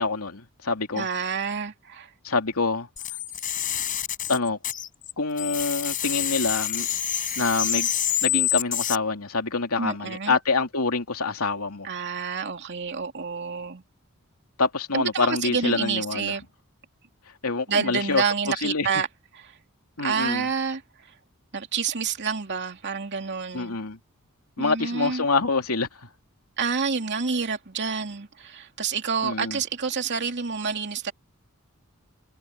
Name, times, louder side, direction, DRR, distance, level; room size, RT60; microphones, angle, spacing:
voice 1, 0.0-1.1 2.2-2.9 4.3-4.6 5.2-6.9 7.4-7.9 8.2-11.9 14.6-16.3 17.4-18.2 18.6-18.9 20.0-20.5 23.5-24.0 24.6-25.9 29.2-29.6, left 3 dB, 85° left, 2.8 m, -26 dB
voice 2, 0.9-2.1 9.8-10.4 11.8-13.8 14.9-16.4 17.7-19.1 19.3-19.6 20.0-21.1 21.5-23.8 24.6-25.3 26.6-31.1, right 5 dB, 55° right, 2.7 m, -28 dB
sound 1, 3.0-5.1 5.4-9.0, left 10 dB, 40° left, 5.3 m, -27 dB
head